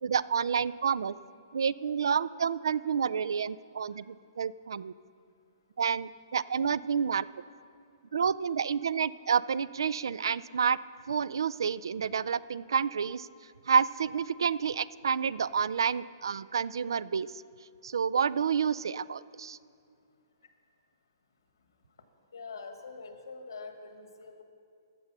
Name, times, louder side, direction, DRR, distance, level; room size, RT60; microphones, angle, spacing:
voice 1, 0.0-1.1 1.5-4.9 5.8-7.2 8.1-10.8 11.1-13.3 13.7-17.4 17.8-19.6, right 6 dB, 85° right, 19 dB, 0.3 m, -29 dB
voice 2, 22.3-24.4, left 4 dB, 90° left, 6 dB, 1.4 m, -44 dB
14.5 x 6.7 x 6.0 m, 2.4 s
hypercardioid pair, 165°, 2 cm